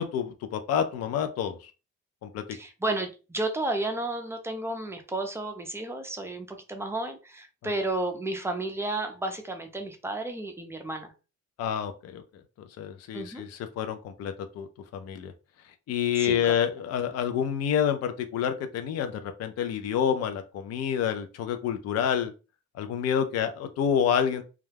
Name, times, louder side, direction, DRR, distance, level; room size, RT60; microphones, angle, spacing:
voice 1, 0.0-1.7 2.2-2.4 7.6-7.7 11.6-12.2 12.8-14.7 14.9-15.3 15.9-22.3 22.7-24.4, left 8 dB, 55° left, 8 dB, 0.4 m, -28 dB
voice 2, 2.5-11.1 13.1-13.4 16.2-16.4, right 2 dB, 10° right, 4 dB, 0.4 m, -32 dB
2.3 x 2.1 x 3.2 m, 0.31 s
cardioid pair, 150°, 31 cm